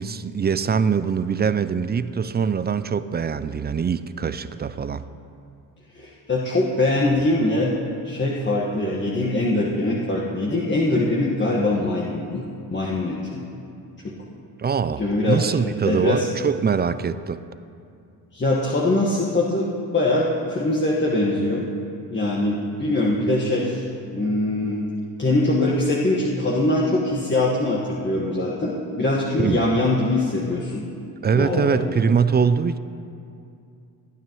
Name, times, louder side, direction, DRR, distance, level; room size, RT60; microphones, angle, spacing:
voice 1, 0.0-5.0 14.6-15.0 15.3-17.4 29.4-29.7 31.2-32.8, right 6 dB, 20° right, 13 dB, 0.4 m, -23 dB
voice 2, 5.9-7.7 8.0-12.4 12.7-13.4 14.0-14.1 15.0-15.5 15.8-16.3 18.3-21.7 22.1-24.9 25.2-30.9 31.3-31.9, left 2 dB, 25° left, -4 dB, 1.6 m, -22 dB
19.5 x 9.1 x 3.1 m, 2.5 s
hypercardioid pair, 60°, 48 cm